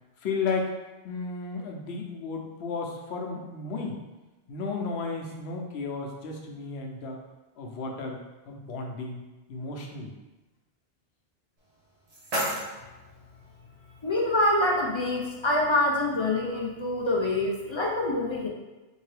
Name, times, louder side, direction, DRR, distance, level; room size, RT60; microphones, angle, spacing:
voice 1, 0.2-0.8 1.0-4.0 4.5-7.2 7.6-8.2 8.5-9.2 9.5-10.1, left 4 dB, 85° left, 1 dB, 0.9 m, -33 dB
sound 1, 11.6-13.6, equal, 40° right, 0.9 m, -34 dB
voice 2, 14.0-18.5, left 1 dB, 50° left, -2 dB, 0.3 m, -25 dB
3.7 x 2.7 x 3.2 m, 1.1 s
omnidirectional pair, 1.0 m